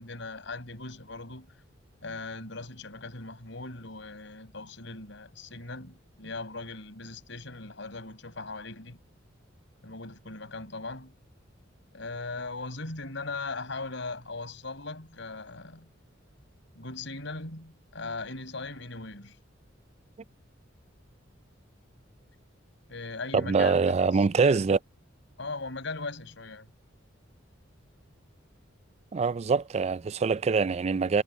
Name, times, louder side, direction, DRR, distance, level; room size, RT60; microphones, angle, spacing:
voice 1, 0.0-1.6 2.0-9.0 9.8-11.1 11.9-15.9 16.8-19.4 22.9-24.1 24.5-24.6 25.4-26.7, left 3 dB, 65° left, 6.9 m, -39 dB
voice 2, 23.3-24.8 29.1-31.2, right 4 dB, 35° right, 0.3 m, -24 dB
head